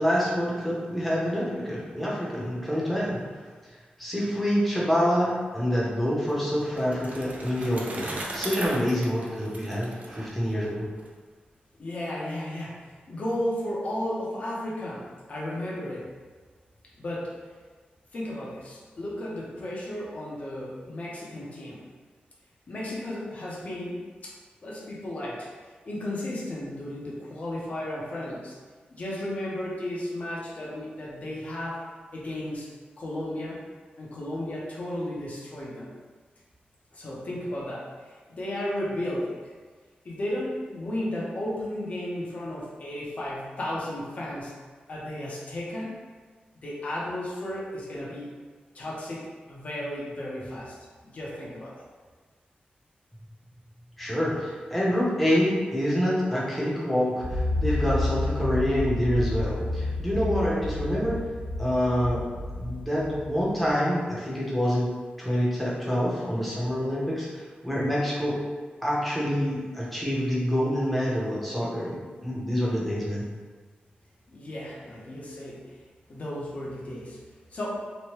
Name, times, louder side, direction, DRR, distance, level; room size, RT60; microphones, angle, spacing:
voice 1, 0.0-3.2 4.0-10.9 54.0-61.2 61.6-62.2 62.5-64.9 65.2-67.3 67.6-68.4 68.8-73.2, equal, ahead, -7 dB, 0.7 m, -26 dB
Bicycle, 6.3-11.1, right 2 dB, 50° right, 0.4 m, -38 dB
voice 2, 11.8-16.1 17.0-17.3 18.1-21.9 22.7-24.3 24.6-25.5 25.8-28.6 28.9-31.8 32.1-32.7 33.0-33.6 34.0-35.9 36.9-39.5 40.0-44.5 44.9-46.0 46.5-48.3 48.7-50.8 51.0-51.8 74.3-75.8 76.1-77.2 77.5-77.8, left 1 dB, 45° left, -5 dB, 0.6 m, -34 dB
sound 1, 57.2-63.7, left 2 dB, 85° right, 0.7 m, -30 dB
3.0 x 2.1 x 3.0 m, 1.5 s
wide cardioid pair, 160°, 3 cm